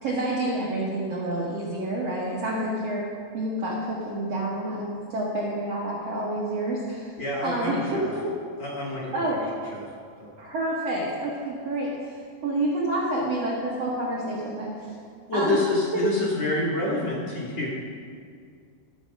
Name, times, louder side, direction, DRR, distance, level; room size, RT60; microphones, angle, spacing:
voice 1, 0.0-3.1 3.3-7.1 7.4-8.3 9.1-9.4 10.4-12.2 12.4-14.9 15.3-15.6 15.9-16.0, right 1 dB, 90° right, -5 dB, 1.3 m, -28 dB
voice 2, 7.2-8.1 8.6-9.1 9.7-9.9 10.2-10.3 15.3-17.7, left 2 dB, 50° left, -6 dB, 2.3 m, -27 dB
14.0 x 6.3 x 5.2 m, 2.2 s
omnidirectional pair, 4.8 m